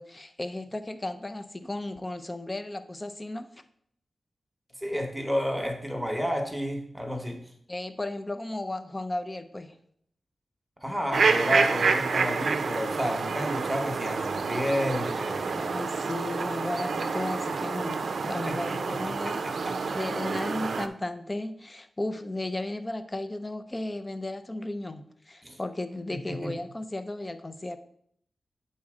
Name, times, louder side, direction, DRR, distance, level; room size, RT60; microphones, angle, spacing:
voice 1, 0.0-3.6 7.7-9.8 15.5-27.8, left 1 dB, 20° left, 10 dB, 0.5 m, -35 dB
voice 2, 4.8-7.4 10.8-15.7 18.4-20.0 25.4-25.6 26.1-26.5, equal, 5° right, 3 dB, 1.1 m, -31 dB
sound 1, 11.1-20.9, right 4 dB, 70° right, 0.5 m, -28 dB
8.4 x 4.2 x 4.8 m, 0.67 s
wide cardioid pair, 90°, 0 cm